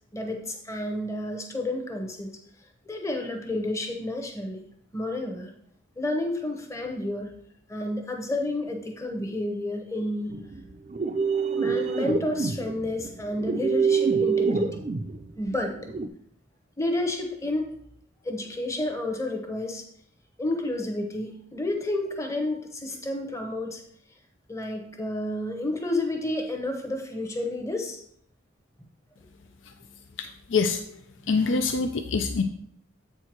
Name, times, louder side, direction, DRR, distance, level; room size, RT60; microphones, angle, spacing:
voice 1, 0.1-2.3 2.9-4.6 4.9-5.5 6.0-7.3 7.7-10.4 11.5-14.8 15.4-15.8 16.8-17.7 18.2-19.8 20.4-23.8 24.5-28.0, left 1 dB, 15° left, 3 dB, 0.9 m, -30 dB
Synthetic Moan, 10.3-16.1, right 5 dB, 35° right, 0.4 m, -26 dB
voice 2, 30.2-31.0 31.3-32.4, left 4 dB, 75° left, 7 dB, 0.5 m, -25 dB
7.7 x 4.5 x 4.5 m, 0.67 s
head